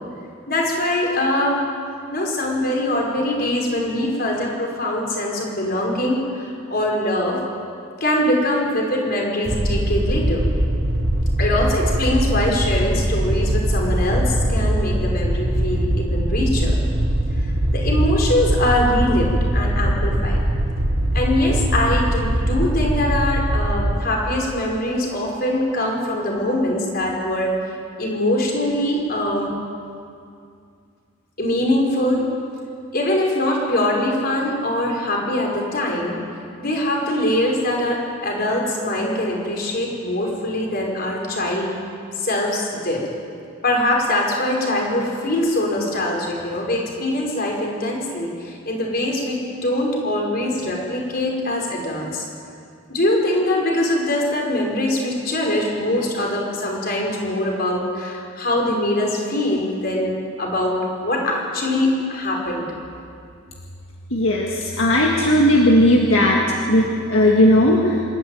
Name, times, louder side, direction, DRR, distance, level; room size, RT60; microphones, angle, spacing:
voice 1, 0.5-1.6 2.1-7.4 8.0-10.4 11.4-16.8 17.7-20.4 21.1-27.5 28.0-29.5 31.4-32.2 32.9-36.1 36.6-41.7 42.1-43.1 43.6-52.2 52.9-60.1 60.4-62.7, left 1 dB, 50° left, -1 dB, 5.0 m, -22 dB
sound 1, 9.4-23.9, right 1 dB, 50° right, 1.5 m, -21 dB
voice 2, 64.1-68.0, left 1 dB, 75° left, -1 dB, 2.0 m, -16 dB
26.5 x 13.0 x 9.3 m, 2.4 s
head